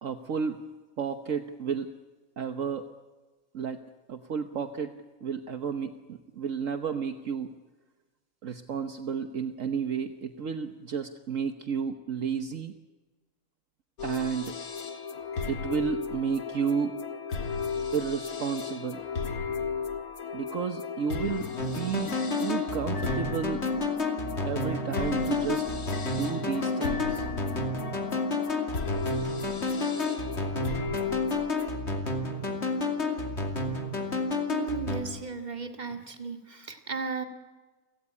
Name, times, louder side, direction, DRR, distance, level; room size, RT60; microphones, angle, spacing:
voice 1, 0.0-0.6 1.0-1.9 2.4-2.8 3.5-3.8 4.1-4.9 5.2-7.6 8.4-12.7 14.0-14.5 15.5-17.0 17.9-19.0 20.3-23.6 24.4-25.7 26.0-27.3, right 6 dB, 60° right, 7 dB, 1.4 m, -32 dB
sound 1, 14.0-31.7, left 5 dB, 85° left, 2.1 m, -35 dB
sound 2, 21.6-35.0, left 2 dB, 50° left, 3.0 m, -30 dB
voice 2, 34.5-37.2, right 5 dB, 30° right, 5 dB, 2.2 m, -35 dB
29.5 x 17.0 x 9.9 m, 1.3 s
omnidirectional pair, 1.5 m